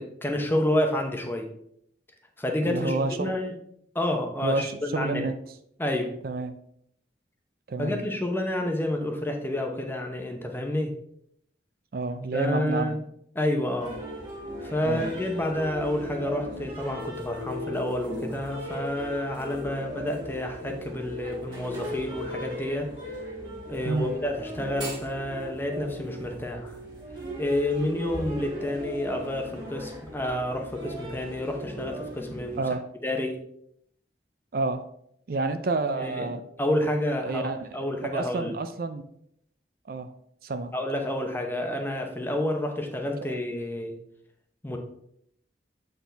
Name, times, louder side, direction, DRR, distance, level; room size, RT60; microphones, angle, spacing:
voice 1, 0.0-1.5 2.4-3.5 3.9-5.3 5.8-6.1 7.8-10.9 12.3-13.0 13.3-14.0 14.6-22.9 23.7-26.8 27.4-32.6 33.0-33.4 36.0-36.3 36.6-37.5 37.7-38.5 40.7-44.0 44.6-44.8, left 1 dB, 10° left, 3 dB, 0.8 m, -29 dB
voice 2, 2.6-3.3 4.4-5.3 6.2-6.6 7.7-8.0 11.9-13.0 14.8-15.0 23.9-24.1 32.6-32.8 34.5-34.9 35.3-36.4 37.2-37.9 38.1-39.0 39.9-40.1 40.4-40.7 43.2-43.4, right 3 dB, 55° right, 9 dB, 0.4 m, -29 dB
sound 1, 13.8-32.6, equal, 25° right, 1.9 m, -37 dB
7.7 x 4.6 x 3.3 m, 0.72 s
head